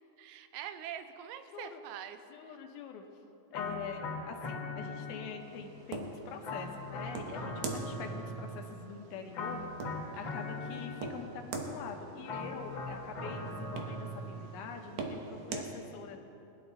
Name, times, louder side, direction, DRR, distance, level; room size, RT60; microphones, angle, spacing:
voice 1, 0.2-2.2 2.5-2.6 7.4-7.8 10.1-10.3, right 10 dB, 85° right, 9 dB, 2.6 m, -45 dB
voice 2, 1.5-1.8 2.3-3.0 3.5-9.6 10.1-16.2, left 6 dB, 80° left, 4 dB, 2.9 m, -44 dB
sound 1, 3.5-5.6 6.4-8.8 9.3-11.4 12.3-14.6, left 2 dB, 60° left, 1.2 m, -40 dB
sound 2, 5.4-15.7, right 4 dB, 65° right, 2.4 m, -44 dB
21.5 x 11.0 x 4.0 m, 2.9 s
omnidirectional pair, 4.3 m